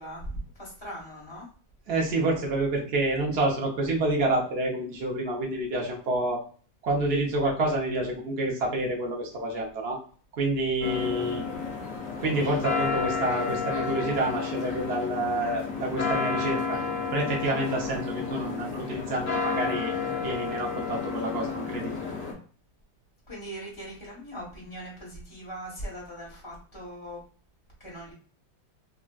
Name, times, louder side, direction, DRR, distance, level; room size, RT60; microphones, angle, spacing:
voice 1, 0.0-1.5 23.3-27.2 27.8-28.1, right 1 dB, 15° left, -4 dB, 1.3 m, -40 dB
voice 2, 1.9-6.4 6.8-10.0 10.4-11.4 12.2-16.8 17.1-19.9 20.2-21.9, right 2 dB, 70° right, -2 dB, 0.6 m, -28 dB
sound 1, 10.8-22.3, left 5 dB, 55° left, 1.0 m, -31 dB
3.3 x 2.5 x 2.3 m, 0.43 s
omnidirectional pair, 2.1 m